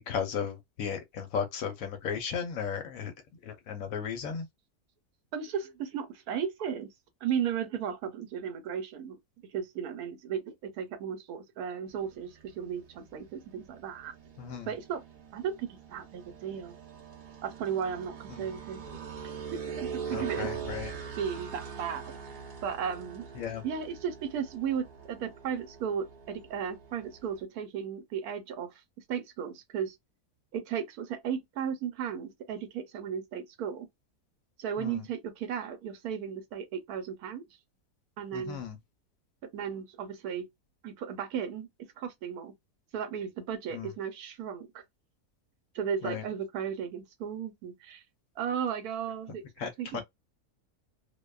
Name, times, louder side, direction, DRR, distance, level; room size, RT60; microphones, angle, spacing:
voice 1, 0.1-3.1 3.4-4.5 14.4-14.7 18.3-18.4 20.1-20.9 23.3-23.6 34.8-35.0 38.3-38.8 43.7-43.9 46.0-46.2 49.6-50.0, left 7 dB, 65° left, 1.0 m, -35 dB
voice 2, 5.3-6.9 7.2-14.1 14.7-15.0 15.3-16.8 17.4-18.8 19.2-20.5 21.2-22.1 22.6-23.3 23.6-28.8 29.1-29.9 30.5-33.9 34.6-37.4 38.2-38.6 39.5-40.5 40.8-41.7 42.0-42.5 42.9-44.8 45.7-48.0 48.4-49.4 49.8-50.0, right 8 dB, 75° right, 1.1 m, -35 dB
sound 1, 11.9-27.4, right 6 dB, 50° right, 0.6 m, -43 dB
2.6 x 2.2 x 2.2 m
omnidirectional pair, 1.7 m